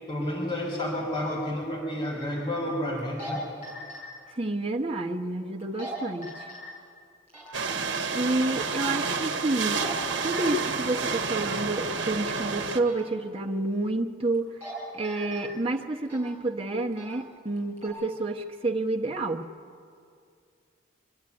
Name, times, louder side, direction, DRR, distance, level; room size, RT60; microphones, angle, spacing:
voice 1, 0.1-3.4, left 1 dB, 25° left, -5 dB, 4.3 m, -30 dB
sound 1, 3.0-3.3 3.6-4.0 5.6-5.9 6.2-6.6 7.3-7.5 8.4-8.6 9.5-9.9 10.2-10.6 12.8-13.0 14.3-14.7 15.0-15.4 16.0-16.3 16.9-17.1 17.6-17.9, equal, 15° right, 7.3 m, -40 dB
voice 2, 4.3-6.5 8.1-9.8 10.2-14.5 14.9-19.4, right 2 dB, 30° right, 1 dB, 1.0 m, -29 dB
sound 2, 7.5-12.8, right 4 dB, 70° right, 1.1 m, -29 dB
24.0 x 11.5 x 9.6 m, 2.3 s
head